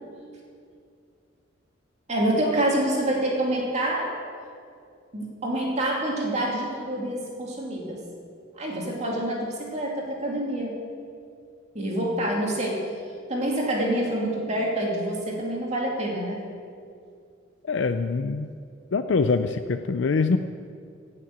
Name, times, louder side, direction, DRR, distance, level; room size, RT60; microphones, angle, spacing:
voice 1, 2.1-4.1 5.1-8.0 8.6-10.8 11.7-12.8 13.3-16.4, right 1 dB, 35° right, -2 dB, 2.5 m, -27 dB
voice 2, 17.7-18.5 18.9-20.4, left 4 dB, 70° left, 9 dB, 0.5 m, -24 dB
16.0 x 6.5 x 8.7 m, 2.4 s
head